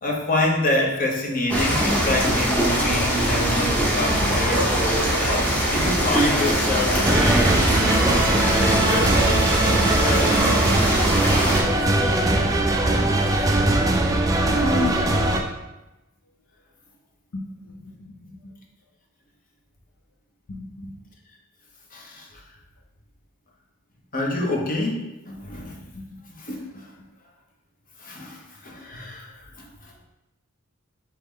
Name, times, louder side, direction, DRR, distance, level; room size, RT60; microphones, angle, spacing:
voice 1, 0.0-10.4 21.9-22.4 24.1-25.8 26.3-26.9 28.0-29.7, left 1 dB, 40° left, 0 dB, 0.8 m, -27 dB
sound 1, 1.5-11.6, equal, 5° left, 0.8 m, -22 dB
sound 2, 7.0-15.4, right 2 dB, 15° right, 0.3 m, -21 dB
voice 2, 14.6-15.0 17.3-17.9 20.5-20.9 25.6-25.7 25.9-26.0, left 1 dB, 70° left, 3 dB, 0.7 m, -30 dB
4.5 x 3.1 x 3.7 m, 0.99 s
head